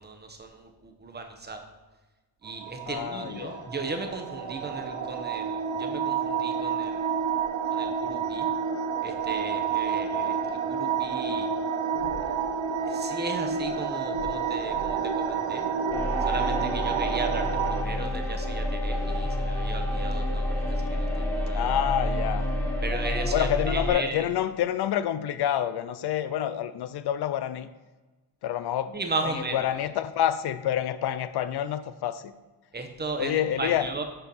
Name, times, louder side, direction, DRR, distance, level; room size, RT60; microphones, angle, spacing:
voice 1, 0.0-1.7 2.4-7.1 7.7-8.5 9.0-11.5 12.8-15.7 16.2-21.7 22.8-24.3 28.9-29.7 32.7-34.0, right 3 dB, 25° right, 0.9 m, -36 dB
sound 1, 2.5-17.8, right 6 dB, 85° right, 0.8 m, -29 dB
voice 2, 2.9-3.7 21.5-22.5 23.3-27.7 28.4-29.0 29.5-32.3 33.2-33.9, left 11 dB, 65° left, 0.5 m, -28 dB
sound 2, 15.9-23.9, left 1 dB, 5° left, 1.6 m, -29 dB
6.8 x 4.5 x 5.5 m
cardioid pair, 115°, 43 cm